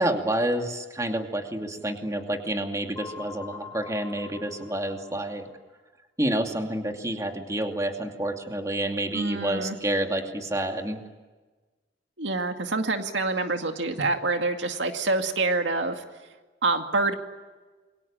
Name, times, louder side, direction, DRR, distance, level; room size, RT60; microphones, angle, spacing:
voice 1, 0.0-5.4 6.2-11.0, right 1 dB, 20° right, 3 dB, 2.6 m, -28 dB
sound 1, 3.0-5.5, left 4 dB, 15° left, 7.6 m, -44 dB
voice 2, 9.1-9.8 12.2-16.0 16.6-17.1, right 3 dB, 90° right, 5 dB, 2.3 m, -26 dB
28.0 x 23.5 x 8.9 m, 1.3 s
head